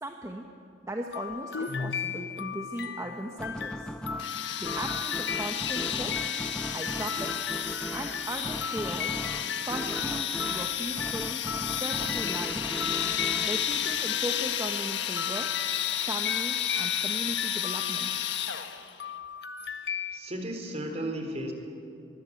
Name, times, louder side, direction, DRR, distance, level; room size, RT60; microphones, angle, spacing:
voice 1, 0.0-0.5 0.8-3.9 4.6-6.4 6.7-7.4 7.9-9.2 9.7-12.7 13.4-15.6 16.0-18.3, right 1 dB, 15° right, 3 dB, 1.2 m, -38 dB
sound 1, 1.1-14.7 15.2-20.2, left 7 dB, 65° left, 1.0 m, -37 dB
sound 2, 3.4-14.7, equal, 5° left, 0.7 m, -38 dB
sound 3, 4.2-18.9, left 10 dB, 80° left, 1.4 m, -32 dB
voice 2, 19.6-21.5, right 1 dB, 35° right, 4 dB, 3.7 m, -35 dB
22.5 x 22.5 x 8.5 m, 2.5 s
head